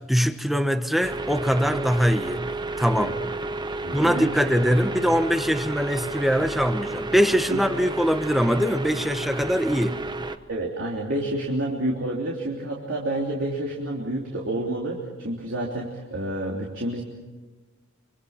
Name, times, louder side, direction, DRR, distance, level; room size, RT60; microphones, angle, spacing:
voice 1, 0.1-2.4 2.8-3.1 3.9-10.0, equal, ahead, 1.2 m, -22 dB
sound 1, 1.0-10.4, right 2 dB, 20° right, 0.9 m, -32 dB
voice 2, 3.8-4.4 7.5-7.6 10.5-17.0, right 1 dB, 65° right, 3.2 m, -29 dB
25.5 x 25.0 x 5.8 m
head